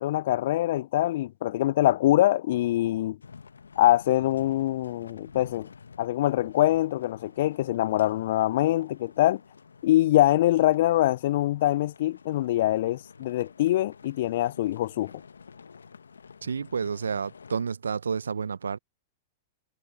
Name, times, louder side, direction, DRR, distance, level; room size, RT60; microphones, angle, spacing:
voice 1, 0.0-3.2 3.8-5.7 6.0-9.4 9.8-15.1, left 14 dB, 60° left, 0.4 m, -24 dB
sound 1, 3.2-17.7, left 5 dB, 80° left, 1.1 m, -50 dB
voice 2, 16.4-18.8, right 6 dB, 80° right, 0.9 m, -30 dB
figure-of-eight pair, 100°, 0 cm